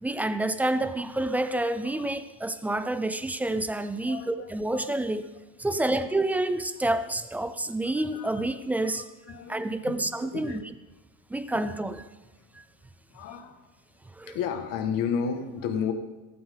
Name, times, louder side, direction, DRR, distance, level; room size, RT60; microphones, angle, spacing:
voice 1, 0.0-5.3 5.6-9.0 9.5-10.6 11.3-12.0 14.2-14.4, right 2 dB, 5° right, 0.3 m, -28 dB
voice 2, 4.1-4.9 5.7-6.1 7.9-8.5 8.8-9.9 10.3-10.6 13.1-13.6 14.3-15.9, left 7 dB, 55° left, 2.0 m, -33 dB
16.5 x 15.0 x 4.0 m
cardioid pair, 150°, 41 cm